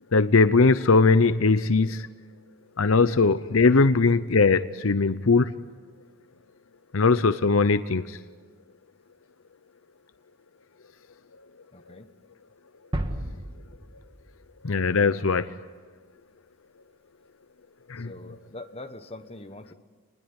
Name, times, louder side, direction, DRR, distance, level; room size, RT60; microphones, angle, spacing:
voice 1, 0.1-2.1 2.8-5.5 6.9-8.2 14.6-15.5 17.9-18.4, left 4 dB, 65° left, 13 dB, 0.7 m, -20 dB
voice 2, 11.7-12.1 18.0-19.7, left 2 dB, 25° left, 7 dB, 1.3 m, -43 dB
sound 1, 12.9-14.8, right 1 dB, 20° right, 1.7 m, -33 dB
29.5 x 20.5 x 9.8 m, 1.5 s
head